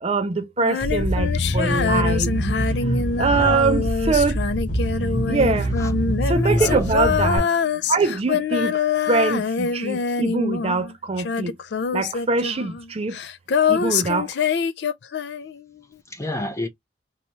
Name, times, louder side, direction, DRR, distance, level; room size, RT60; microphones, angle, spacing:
voice 1, 0.0-2.3 3.2-4.4 5.3-5.7 6.2-7.5 7.9-8.8 9.1-11.5 11.9-13.2 13.7-14.3, right 4 dB, 35° right, 0.5 m, -23 dB
Female singing, 0.6-10.9 11.2-15.6, left 6 dB, 75° left, 0.4 m, -25 dB
sound 1, 0.8-7.4, equal, 50° left, 1.0 m, -24 dB
voice 2, 3.3-3.6 5.8-5.9 6.5-6.9 13.9-14.0 16.1-16.7, left 1 dB, 15° left, 0.7 m, -29 dB
4.1 x 2.3 x 3.0 m
head